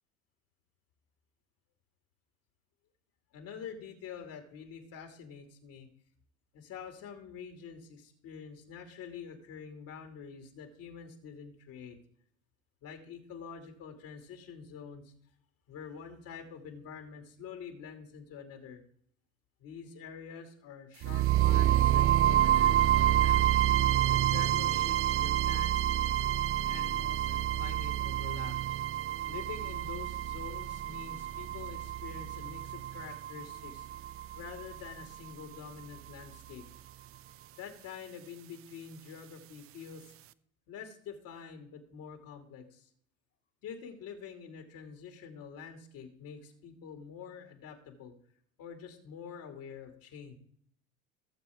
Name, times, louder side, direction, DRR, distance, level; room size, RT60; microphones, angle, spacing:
voice 1, 3.3-5.9 6.5-12.0 12.8-15.1 15.7-18.8 19.6-23.4 24.1-25.9 26.6-28.9 29.3-33.9 34.3-36.6 37.5-40.1 40.7-42.9 43.6-48.1 48.6-50.4, left 6 dB, 55° left, 4 dB, 2.6 m, -46 dB
sound 1, 21.0-35.0, right 12 dB, 35° right, 0.5 m, -28 dB
17.5 x 7.2 x 3.5 m, 0.63 s
hypercardioid pair, 80°, 40 cm